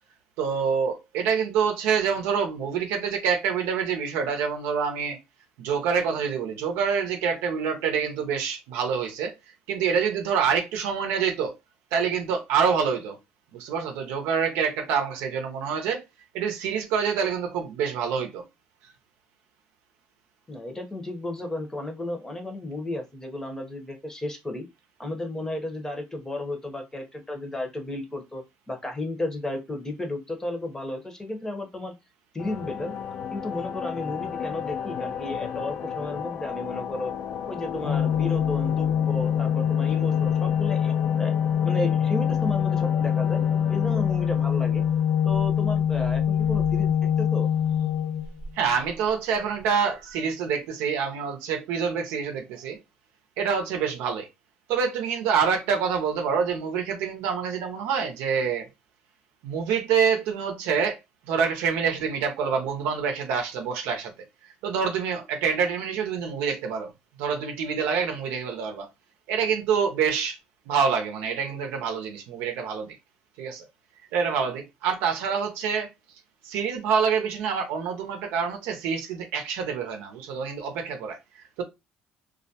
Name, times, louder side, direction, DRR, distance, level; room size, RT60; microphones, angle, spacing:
voice 1, 0.4-5.2 5.6-9.3 9.7-11.6 11.9-13.2 13.5-16.0 16.3-18.4 48.5-52.8 53.4-54.3 54.7-58.7 59.4-61.0 61.3-64.1 64.6-66.9 67.2-68.9 69.3-70.4 70.7-72.9 73.4-73.6 74.1-75.9 76.4-81.6, right 6 dB, 85° right, 0.6 m, -26 dB
voice 2, 20.5-24.6 25.0-31.9 32.3-32.9 33.3-37.1 37.5-41.3 41.6-43.4 43.7-44.8 45.2-47.5, left 2 dB, 15° left, 0.7 m, -33 dB
sound 1, 32.4-46.0, left 8 dB, 60° left, 0.4 m, -35 dB
Organ, 37.8-48.7, left 8 dB, 80° left, 1.0 m, -24 dB
2.3 x 2.1 x 2.7 m
supercardioid pair, 85°, 4 cm